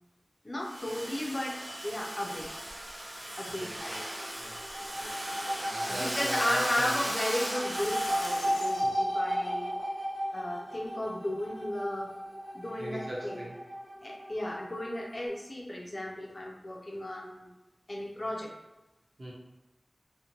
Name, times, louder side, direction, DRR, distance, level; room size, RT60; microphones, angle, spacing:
voice 1, 0.4-2.5 3.4-4.0 5.9-9.7 10.3-12.1 12.5-13.4 14.0-17.5 17.9-18.5, left 1 dB, 45° left, -1 dB, 0.5 m, -34 dB
Domestic sounds home sounds, 0.6-8.9, right 1 dB, 30° right, 0.4 m, -37 dB
voice 2, 3.5-7.0 12.8-13.6 19.2-19.3, right 1 dB, 70° right, -5 dB, 0.8 m, -41 dB
sound 1, 4.0-15.3, equal, 10° right, 1.0 m, -35 dB
2.5 x 2.1 x 2.8 m, 1.0 s
wide cardioid pair, 50°, 0 cm